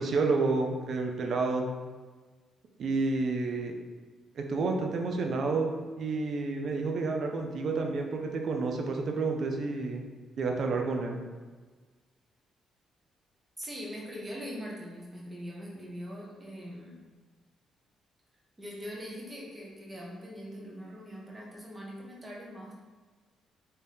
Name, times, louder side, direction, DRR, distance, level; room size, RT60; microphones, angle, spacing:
voice 1, 0.0-1.7 2.8-3.8 4.4-10.0 10.4-11.2, right 3 dB, 60° right, 2 dB, 0.5 m, -30 dB
voice 2, 13.6-17.0 18.6-22.7, equal, 20° right, -3 dB, 1.0 m, -42 dB
3.3 x 2.8 x 3.4 m, 1.4 s
cardioid pair, 90°, 0 cm